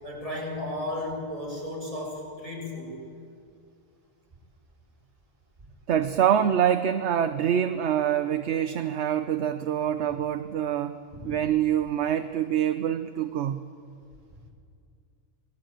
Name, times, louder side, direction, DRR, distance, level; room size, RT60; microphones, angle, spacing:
voice 1, 0.0-2.9 11.2-11.4, left 1 dB, 25° right, -3 dB, 7.3 m, -34 dB
voice 2, 5.9-11.0 11.2-13.6, right 9 dB, 60° right, 10 dB, 1.0 m, -25 dB
26.5 x 19.5 x 9.0 m, 2.4 s
omnidirectional pair, 1.4 m